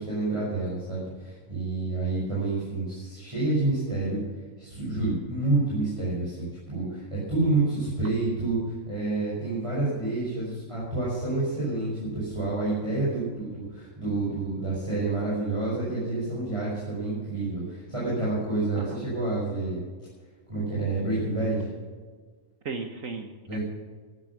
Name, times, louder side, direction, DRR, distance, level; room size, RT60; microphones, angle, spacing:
voice 1, 0.0-4.2 4.6-19.8 20.5-21.7 23.5-23.6, right 2 dB, 20° right, -8 dB, 5.7 m, -28 dB
voice 2, 18.7-19.1 22.6-23.6, right 4 dB, 60° right, 5 dB, 1.5 m, -36 dB
14.5 x 11.5 x 6.0 m, 1.5 s
omnidirectional pair, 1.6 m